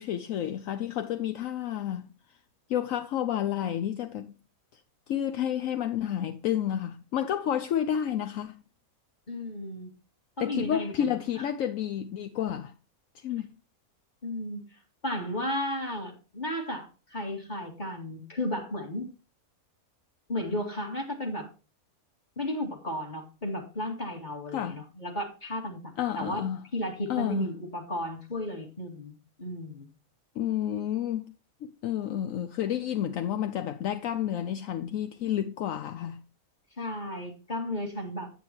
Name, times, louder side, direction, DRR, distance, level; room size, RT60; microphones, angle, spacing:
voice 1, 0.0-2.1 2.7-4.3 4.7-4.8 5.1-8.6 10.4-12.7 13.2-13.5 24.5-24.8 26.0-26.6 27.1-27.5 30.4-31.2 31.8-36.2, left 10 dB, 70° left, 1.0 m, -30 dB
voice 2, 9.3-9.9 10.4-11.2 14.2-14.7 15.0-19.1 20.3-21.5 22.4-26.4 26.7-29.9 36.8-38.3, left 1 dB, 30° left, 2.5 m, -34 dB
9.2 x 9.2 x 3.0 m
omnidirectional pair, 1.5 m